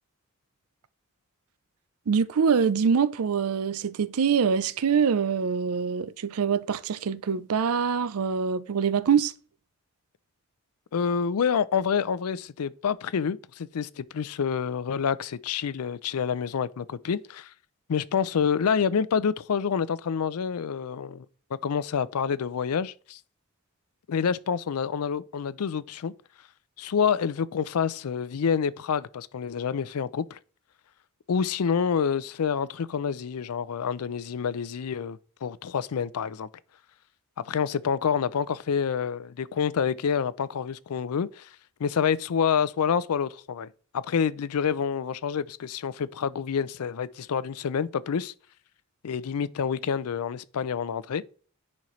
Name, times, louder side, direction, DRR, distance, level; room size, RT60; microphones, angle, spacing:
voice 1, 2.1-9.3, right 6 dB, 80° right, 0.5 m, -24 dB
voice 2, 10.9-17.5 17.9-21.3 21.6-23.2 24.1-26.1 26.8-30.4 31.3-36.5 37.4-41.5 41.8-48.3 49.0-51.2, left 7 dB, 85° left, 0.4 m, -28 dB
10.5 x 4.3 x 3.1 m
head